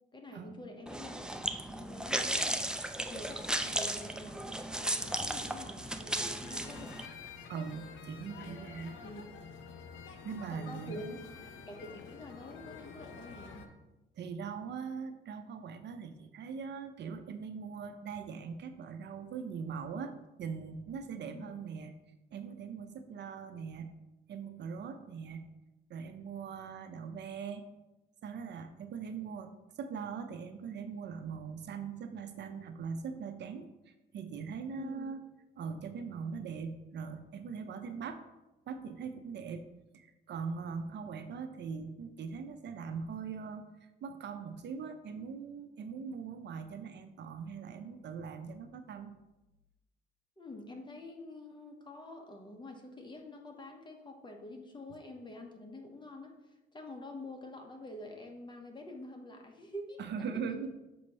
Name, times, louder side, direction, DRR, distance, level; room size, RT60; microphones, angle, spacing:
voice 1, 0.1-2.7 3.1-7.0 9.0-9.2 10.5-11.3 11.7-13.7 21.3-21.5 34.7-35.1 50.4-56.4 56.7-60.7, left 1 dB, 25° left, 3 dB, 1.0 m, -47 dB
sound 1, 0.9-7.1, right 1 dB, 5° right, 0.4 m, -35 dB
sound 2, 6.4-13.7, left 5 dB, 80° left, 0.7 m, -49 dB
voice 2, 7.5-9.0 10.2-11.2 14.2-20.1 20.4-21.9 22.3-23.9 24.3-25.4 25.9-27.7 28.2-35.2 35.6-38.2 38.7-39.7 39.9-49.1 60.0-60.7, right 6 dB, 60° right, 8 dB, 0.6 m, -41 dB
6.2 x 2.9 x 5.3 m, 1.0 s
cardioid pair, 90°, 20 cm